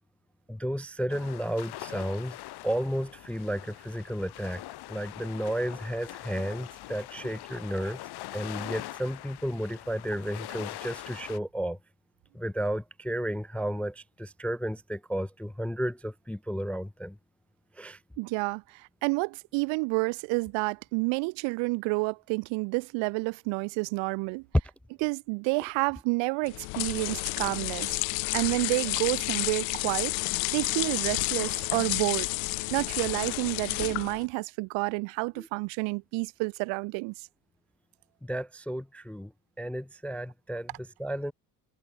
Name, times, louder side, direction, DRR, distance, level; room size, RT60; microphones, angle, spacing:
voice 1, 0.5-2.4 2.6-4.6 4.9-11.8 12.3-17.2 17.7-18.0 35.4-35.5 38.2-39.3 39.6-41.3, equal, 5° left, 0.3 m, -33 dB
sound 1, 1.1-11.4, left 16 dB, 55° left, 1.2 m, -43 dB
voice 2, 18.2-24.4 25.0-27.9 28.3-30.1 30.5-32.3 32.7-37.1, right 29 dB, 70° right, 0.7 m, -29 dB
sound 2, 26.5-34.3, left 36 dB, 70° left, 0.7 m, -31 dB
hypercardioid pair, 75°, 47 cm